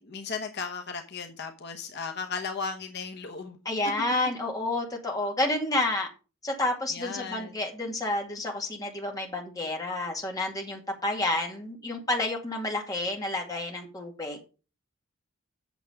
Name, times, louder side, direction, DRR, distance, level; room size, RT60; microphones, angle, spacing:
voice 1, 0.0-3.6 6.9-7.5, left 5 dB, 55° left, 4 dB, 1.0 m, -36 dB
voice 2, 3.7-6.1 6.4-14.4, left 2 dB, 15° left, 0 dB, 2.2 m, -30 dB
8.3 x 6.8 x 5.1 m, 0.33 s
head